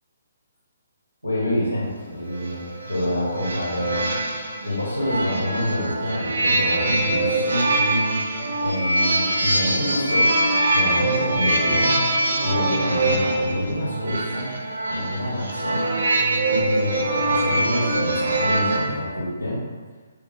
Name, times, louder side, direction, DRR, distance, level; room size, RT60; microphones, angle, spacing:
voice 1, 1.2-4.1 4.6-7.8 8.6-10.4 10.7-11.9 12.4-14.5 14.8-15.9 16.6-19.6, left 1 dB, 90° right, -7 dB, 1.4 m, -27 dB
sound 1, 2.3-18.9, right 2 dB, 65° right, 0.6 m, -23 dB
5.2 x 2.4 x 3.2 m, 1.5 s
figure-of-eight pair, 135°, 0 cm